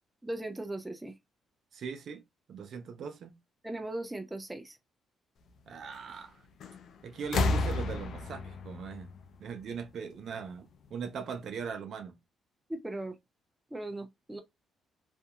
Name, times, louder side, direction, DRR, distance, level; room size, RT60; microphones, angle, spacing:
voice 1, 0.2-1.1 3.6-4.8 12.7-13.2 13.7-14.4, right 1 dB, 10° right, 0.6 m, -38 dB
voice 2, 1.7-2.2 2.5-3.4 5.7-6.4 7.0-9.1 9.4-12.2, right 6 dB, 65° right, 0.6 m, -40 dB
sound 1, 6.6-6.9 7.2-10.0 11.1-11.2, left 3 dB, 65° left, 0.5 m, -32 dB
2.7 x 2.6 x 2.3 m
cardioid pair, 90°, 0 cm